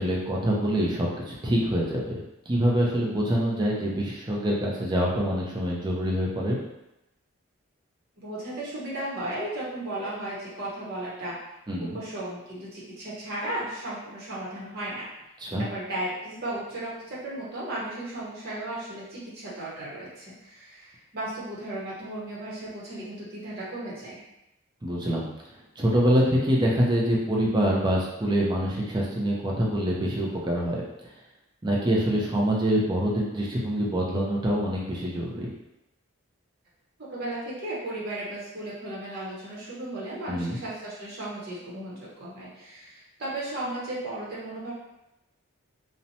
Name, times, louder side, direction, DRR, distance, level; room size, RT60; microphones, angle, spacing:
voice 1, 0.0-6.6 11.7-12.0 15.4-15.6 24.8-25.3 25.8-30.8 31.6-35.5 40.3-40.6, equal, 20° right, -3 dB, 0.4 m, -25 dB
voice 2, 8.2-11.4 11.9-15.1 15.7-24.2 37.1-44.7, right 1 dB, 45° right, -7 dB, 0.8 m, -35 dB
2.8 x 2.1 x 2.6 m, 0.91 s
head